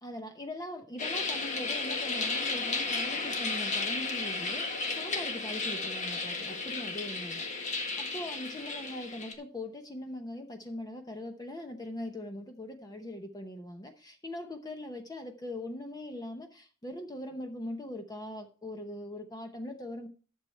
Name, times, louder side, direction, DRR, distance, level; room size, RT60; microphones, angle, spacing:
voice 1, 0.0-20.1, left 1 dB, 20° left, 5 dB, 0.9 m, -41 dB
sound 1, 1.0-9.3, left 3 dB, 35° left, 1.6 m, -33 dB
11.5 x 7.1 x 4.3 m, 0.38 s
head